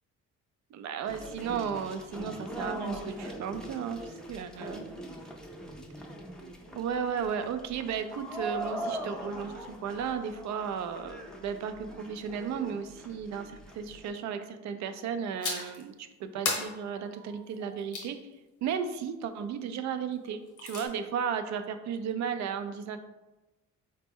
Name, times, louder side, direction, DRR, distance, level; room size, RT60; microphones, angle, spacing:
voice 1, 0.7-4.9 6.8-18.2 18.6-23.0, right 7 dB, 65° right, 9 dB, 0.4 m, -34 dB
sound 1, 1.1-14.1, right 1 dB, ahead, 0.5 m, -41 dB
sound 2, 15.4-15.8 16.5-18.1 20.2-20.9, left 3 dB, 85° left, 0.9 m, -35 dB
4.0 x 2.2 x 3.5 m, 1.0 s
cardioid pair, 90°, 30 cm